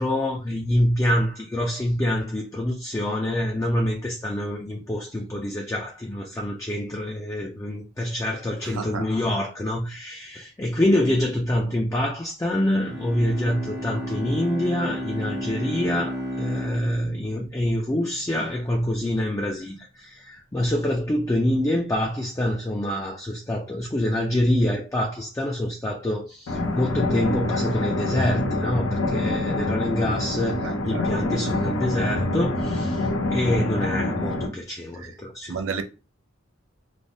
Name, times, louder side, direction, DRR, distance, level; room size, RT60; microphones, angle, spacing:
voice 1, 0.0-35.6, left 1 dB, 15° left, 0.3 m, -26 dB
voice 2, 8.6-9.1 14.1-14.2 30.6-31.1 31.5-31.6 35.0-35.1 35.5-35.8, right 5 dB, 80° right, 0.5 m, -32 dB
Bowed string instrument, 12.7-18.3, equal, 55° right, 0.9 m, -33 dB
sound 1, 26.5-34.5, left 2 dB, 80° left, 0.6 m, -26 dB
3.2 x 2.1 x 2.6 m
head